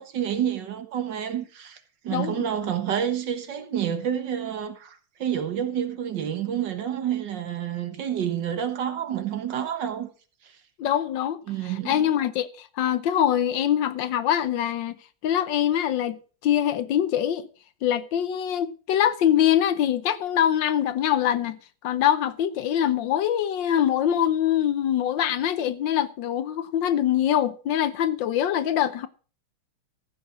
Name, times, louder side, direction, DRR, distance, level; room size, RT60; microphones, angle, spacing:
voice 1, 0.0-1.8 2.0-10.1 11.5-12.1, right 9 dB, 65° right, 1.9 m, -29 dB
voice 2, 2.1-2.5 10.8-14.9 15.2-17.5 17.8-29.1, left 10 dB, 70° left, 1.4 m, -24 dB
15.0 x 6.2 x 6.2 m
omnidirectional pair, 2.2 m